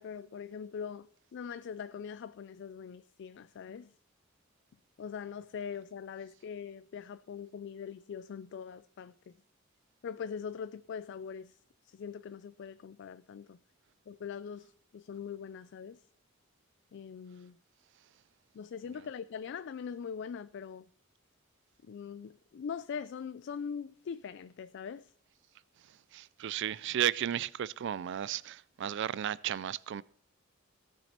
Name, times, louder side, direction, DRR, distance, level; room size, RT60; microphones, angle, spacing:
voice 1, 0.0-3.9 5.0-9.4 10.0-11.6 11.8-13.6 14.1-16.0 16.9-17.6 18.5-20.9 21.9-25.1, left 7 dB, 60° left, 0.3 m, -42 dB
voice 2, 25.9-30.0, right 10 dB, 60° right, 0.4 m, -34 dB
17.0 x 6.2 x 4.3 m
head